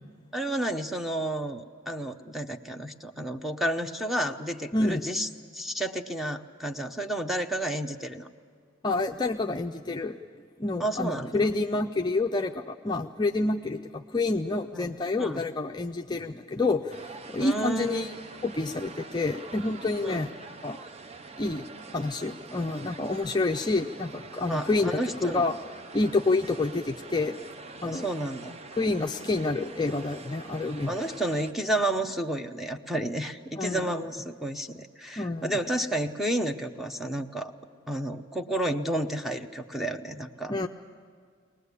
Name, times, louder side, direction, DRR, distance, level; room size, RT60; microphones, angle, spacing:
voice 1, 0.3-8.3 10.8-11.5 14.7-14.9 15.2-15.4 17.4-18.1 20.0-20.3 24.4-25.4 27.8-28.6 30.8-37.5 37.9-40.5, right 1 dB, ahead, 6 dB, 0.8 m, -31 dB
voice 2, 4.7-5.0 8.8-10.2 10.6-18.1 18.4-20.3 20.6-20.8 21.4-25.6 25.9-27.4 27.8-28.1 28.8-31.0 33.6-33.9 35.2-35.5 40.5-40.7, left 2 dB, 20° left, 3 dB, 0.5 m, -28 dB
sound 1, 16.9-31.5, right 3 dB, 30° right, 0.5 m, -45 dB
22.5 x 19.5 x 8.3 m, 2.1 s
head